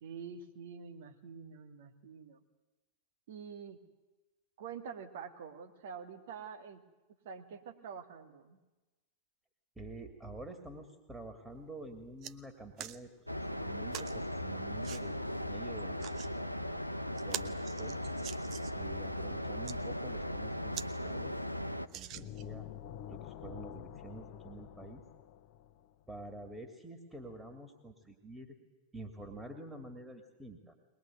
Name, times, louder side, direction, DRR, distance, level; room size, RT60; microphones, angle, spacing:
voice 1, 0.0-2.4 3.3-3.8 4.6-6.8 7.2-8.6, right 6 dB, 55° right, 4 dB, 2.2 m, -46 dB
voice 2, 9.8-13.1 13.5-15.2 15.5-16.7 17.3-18.0 18.7-21.4 21.7-22.7 23.1-25.0 26.1-28.6 28.9-30.7, right 2 dB, 10° right, 4 dB, 2.7 m, -48 dB
sound 1, 11.5-11.6 12.0-12.3 12.8-13.0 13.9-14.1 14.8-15.0 15.8-16.3 16.8-16.9 17.2-18.8 19.4-19.8 20.3-20.4 20.7-20.9 21.2-21.3 21.9-22.6 23.2-23.3, right 12 dB, 40° right, 0.9 m, -44 dB
sound 2, 13.3-21.9, left 1 dB, 90° left, 0.7 m, -38 dB
sound 3, 22.1-25.9, left 11 dB, 45° left, 1.0 m, -47 dB
22.0 x 20.5 x 9.3 m, 1.1 s
figure-of-eight pair, 90°, 0 cm